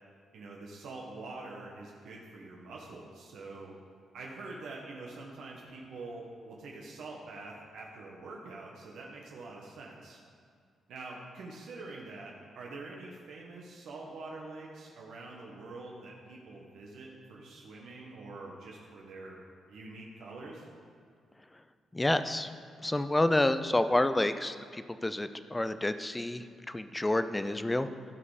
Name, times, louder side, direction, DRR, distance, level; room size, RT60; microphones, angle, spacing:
voice 1, 0.3-3.7 4.1-10.2 10.9-19.4 19.7-20.7, right 3 dB, 80° right, -2 dB, 1.4 m, -45 dB
voice 2, 21.9-22.5 22.8-27.9, left 1 dB, 10° left, 11 dB, 0.4 m, -29 dB
15.5 x 5.4 x 5.0 m, 2.2 s
cardioid pair, 135°, 0 cm